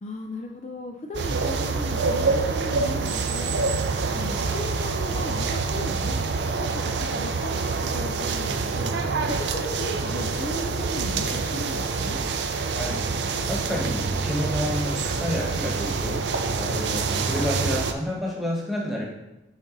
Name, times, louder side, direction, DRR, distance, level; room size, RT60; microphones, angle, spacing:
voice 1, 0.0-3.6 4.1-6.2 6.5-8.9 9.2-12.2, left 2 dB, 40° left, 3 dB, 0.4 m, -36 dB
sound 1, 1.1-17.9, right 4 dB, 75° right, 0.5 m, -26 dB
voice 2, 13.4-16.2 16.5-19.1, equal, ahead, -4 dB, 1.3 m, -29 dB
6.1 x 4.0 x 3.9 m, 0.93 s
head